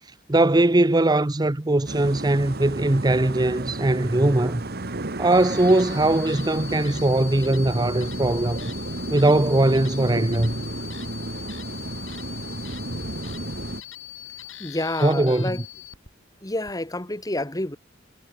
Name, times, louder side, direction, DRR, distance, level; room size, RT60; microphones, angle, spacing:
voice 1, 0.3-4.6 5.2-8.6 9.1-10.5 15.0-15.6, right 2 dB, 20° right, 0.7 m, -20 dB
sound 1, 1.9-13.8, right 2 dB, 50° right, 1.5 m, -33 dB
sound 2, 5.3-16.1 16.6-16.7, left 14 dB, 70° left, 5.3 m, -41 dB
voice 2, 14.6-15.6 16.4-17.8, left 1 dB, 20° left, 2.2 m, -29 dB
head